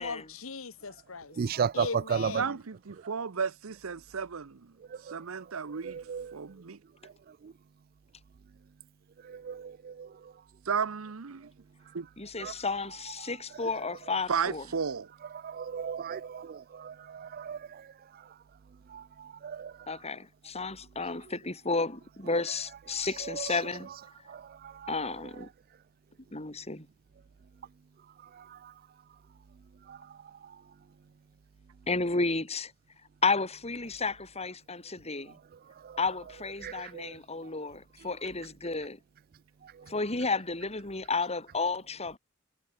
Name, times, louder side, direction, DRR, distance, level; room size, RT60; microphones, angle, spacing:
voice 1, 0.0-1.4 1.7-2.6, left 4 dB, 75° left, 1.4 m, -38 dB
voice 2, 1.4-2.3 5.8-6.3 9.4-10.1 12.4-12.5 15.4-17.6 19.4-19.7 24.8-24.9 36.6-37.1, right 7 dB, 45° right, 0.4 m, -33 dB
voice 3, 2.4-4.6 5.1-6.0 6.3-6.8 10.7-11.5 11.9-12.1 14.3-15.1, right 6 dB, 80° right, 0.8 m, -33 dB
voice 4, 12.2-14.7 19.9-23.9 24.9-25.5 26.3-26.9 31.9-32.7 33.2-35.4 36.0-39.0 39.9-42.2, left 3 dB, 30° left, 4.1 m, -32 dB
head